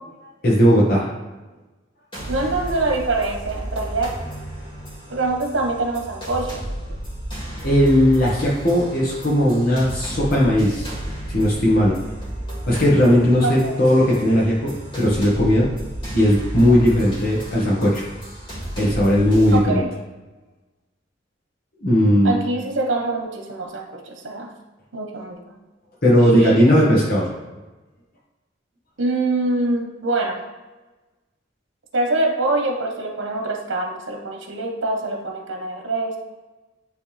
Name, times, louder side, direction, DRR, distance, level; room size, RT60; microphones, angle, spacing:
voice 1, 0.4-1.1 7.6-10.8 11.3-11.9 12.7-15.7 16.1-18.0 18.8-19.8 21.8-22.3 26.0-27.3, equal, 50° left, -5 dB, 1.4 m, -17 dB
sound 1, 2.1-19.6, right 1 dB, 30° left, 2.1 m, -33 dB
voice 2, 2.3-4.1 5.1-6.6 13.4-13.8 19.5-19.9 22.2-24.5 24.9-25.4 26.2-26.7 29.0-30.4 31.9-36.2, right 2 dB, 85° right, 2 dB, 1.2 m, -24 dB
10.0 x 3.4 x 3.4 m, 1.2 s
head